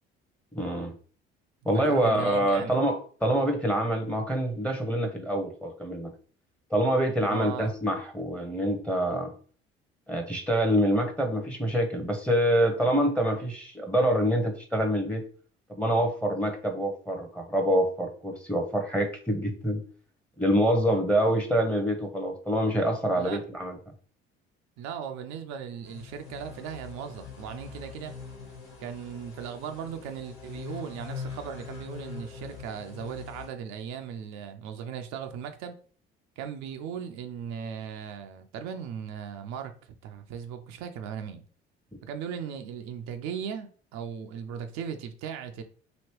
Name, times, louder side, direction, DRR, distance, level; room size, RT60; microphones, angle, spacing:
voice 1, 0.5-0.9 1.6-6.1 6.7-9.3 10.1-15.2 15.8-19.8 20.4-23.8, right 1 dB, 5° left, 0.8 m, -26 dB
voice 2, 1.7-2.8 7.2-7.7 23.1-23.4 24.8-28.1 28.8-35.7 36.4-39.7 40.0-41.4 42.0-45.6, right 7 dB, 65° right, 0.5 m, -37 dB
sound 1, 25.8-33.5, left 6 dB, 70° left, 1.4 m, -43 dB
3.0 x 2.8 x 3.0 m
hypercardioid pair, 60°, 29 cm